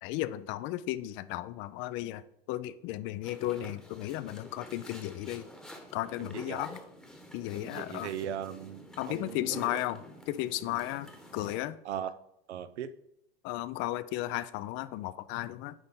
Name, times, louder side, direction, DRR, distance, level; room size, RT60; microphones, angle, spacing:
voice 1, 0.0-5.5 5.9-6.8 7.3-8.1 9.0-11.8 13.4-15.7, left 15 dB, 40° left, 0.4 m, -35 dB
sound 1, 3.2-11.6, equal, ahead, 1.1 m, -49 dB
voice 2, 6.2-6.6 7.6-9.8 11.8-12.1 12.5-12.9, right 9 dB, 85° right, 0.6 m, -38 dB
9.8 x 3.9 x 3.7 m
hypercardioid pair, 105°, 33 cm